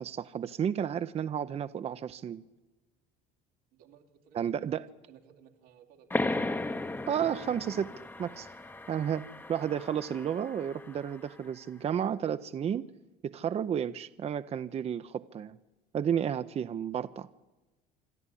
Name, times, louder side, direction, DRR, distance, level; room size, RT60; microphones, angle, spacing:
voice 1, 0.0-2.4 4.3-4.8 7.1-7.9 8.2-8.5 8.9-12.9 13.2-15.6 15.9-17.3, right 8 dB, 30° right, 13 dB, 0.6 m, -32 dB
voice 2, 3.7-4.6 5.1-6.5, right 8 dB, 90° right, 2 dB, 3.0 m, -59 dB
sound 1, 6.1-11.3, left 2 dB, 10° left, 0.8 m, -36 dB
26.5 x 12.5 x 9.9 m, 1.1 s
cardioid pair, 120°, 20 cm